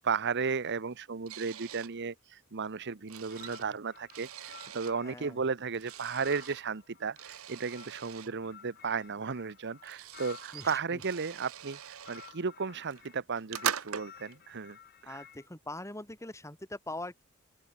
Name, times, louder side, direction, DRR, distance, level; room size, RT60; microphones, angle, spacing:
voice 1, 0.0-14.8 15.0-15.2, right 5 dB, 55° right, 0.9 m, -34 dB
sound 1, 1.3-1.9 2.6-5.0 5.7-6.6 7.2-8.3 9.3-9.4 9.6-12.3 12.8-14.3, right 9 dB, 80° right, 1.0 m, -41 dB
sound 2, 3.2-5.4 5.8-10.9 11.6-13.2 13.5-15.5, left 8 dB, 50° left, 2.3 m, -54 dB
voice 2, 5.0-5.4 10.5-11.0 15.0-17.2, left 2 dB, 15° left, 4.6 m, -42 dB
open air
head